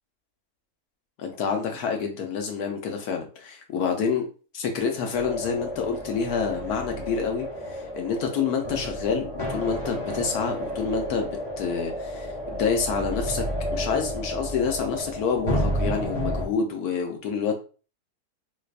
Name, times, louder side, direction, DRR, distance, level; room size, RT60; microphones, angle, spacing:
voice 1, 1.2-4.3 4.5-12.3 12.5-17.5, left 6 dB, 80° left, 3 dB, 1.3 m, -28 dB
sound 1, 5.1-16.5, equal, 25° left, 0.6 m, -31 dB
3.3 x 3.1 x 2.4 m, 0.36 s
omnidirectional pair, 1.6 m